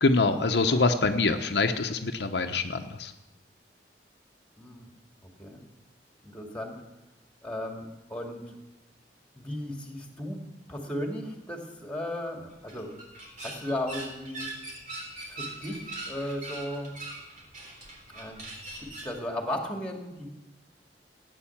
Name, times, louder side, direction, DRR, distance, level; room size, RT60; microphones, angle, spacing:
voice 1, 0.0-3.1, left 3 dB, 70° left, 5 dB, 0.9 m, -25 dB
voice 2, 4.6-4.9 5.4-5.6 6.2-6.7 7.4-7.8 8.1-8.6 9.3-10.4 10.7-12.9 13.4-14.5 15.3-16.9 18.1-18.4 18.8-20.3, left 1 dB, 5° left, 2 dB, 2.4 m, -35 dB
sound 1, 12.5-19.2, right 2 dB, 45° right, 3.8 m, -41 dB
16.0 x 9.5 x 7.3 m, 1.0 s
head